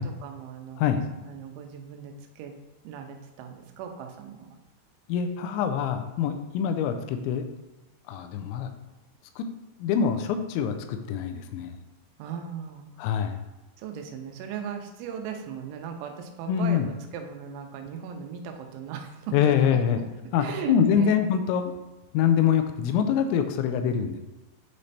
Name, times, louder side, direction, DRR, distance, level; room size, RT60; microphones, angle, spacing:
voice 1, 0.0-2.5 2.8-4.6 12.2-12.9 13.8-19.8 20.4-21.2, right 7 dB, 85° right, 4 dB, 3.2 m, -38 dB
voice 2, 5.1-7.4 8.1-8.7 9.4-9.5 9.8-11.8 13.0-13.4 16.5-16.9 19.3-20.0 20.3-21.7 22.1-24.2, left 8 dB, 85° left, 7 dB, 2.9 m, -25 dB
9.6 x 3.2 x 4.1 m, 1.1 s
omnidirectional pair, 5.3 m